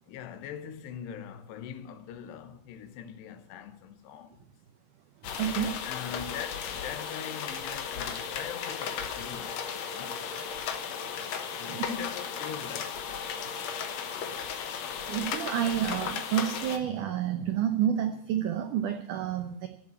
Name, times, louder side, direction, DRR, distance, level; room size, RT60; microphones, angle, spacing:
voice 1, 0.1-4.5 5.4-10.4 11.6-13.1, left 8 dB, 85° left, 3.2 m, -42 dB
sound 1, 5.2-16.8, left 7 dB, 70° left, 1.7 m, -35 dB
voice 2, 5.3-5.7 11.7-11.8 14.3-14.6 15.1-19.7, right 10 dB, 85° right, 1.8 m, -29 dB
14.5 x 7.5 x 8.6 m
omnidirectional pair, 4.7 m